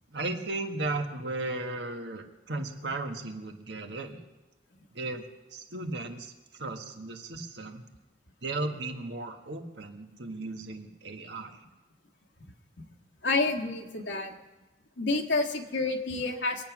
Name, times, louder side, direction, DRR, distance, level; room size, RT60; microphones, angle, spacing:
voice 1, 0.1-4.2 4.9-5.2 5.5-7.8 8.4-11.6, right 2 dB, 70° right, 5 dB, 1.5 m, -35 dB
voice 2, 13.2-14.3 15.0-16.6, left 3 dB, 85° left, 1 dB, 1.6 m, -29 dB
23.5 x 9.0 x 6.1 m, 1.1 s
head